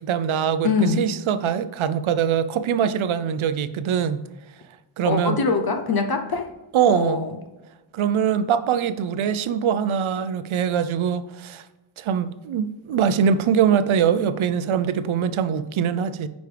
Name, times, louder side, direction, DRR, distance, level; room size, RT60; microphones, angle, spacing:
voice 1, 0.0-4.3 5.0-5.4 6.7-7.2 7.9-11.7 12.0-16.3, right 8 dB, 75° right, 0.6 m, -23 dB
voice 2, 0.6-1.0 5.0-6.5 6.9-7.4, left 4 dB, 50° left, 0.8 m, -23 dB
9.4 x 5.2 x 3.3 m
wide cardioid pair, 115°, 49 cm